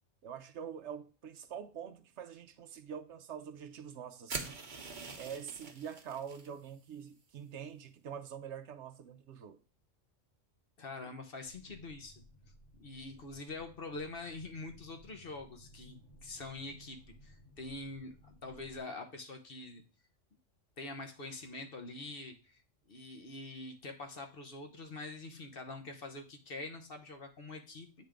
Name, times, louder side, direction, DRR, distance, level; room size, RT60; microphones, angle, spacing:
voice 1, 0.2-4.6 5.2-9.6 16.7-16.8, right 8 dB, 70° right, 0.9 m, -45 dB
sound 1, 4.3-6.5, right 4 dB, 40° right, 1.0 m, -43 dB
voice 2, 10.8-12.2 12.8-19.8 20.8-22.6 22.9-27.9, left 3 dB, 50° left, 1.0 m, -45 dB
sound 2, 11.4-18.8, equal, 80° left, 2.0 m, -59 dB
8.1 x 3.5 x 4.9 m
omnidirectional pair, 1.3 m